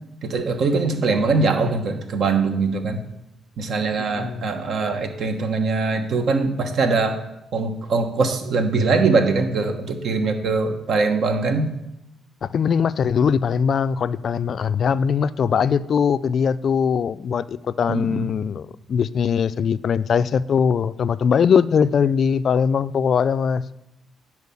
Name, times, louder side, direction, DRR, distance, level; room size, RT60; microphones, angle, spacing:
voice 1, 0.2-3.0 3.6-7.2 7.5-11.7 17.9-18.3, right 4 dB, 65° right, 1.2 m, -22 dB
voice 2, 4.1-4.5 12.4-23.6, left 7 dB, 55° left, 0.3 m, -21 dB
9.6 x 4.5 x 7.0 m
cardioid pair, 90°, 0 cm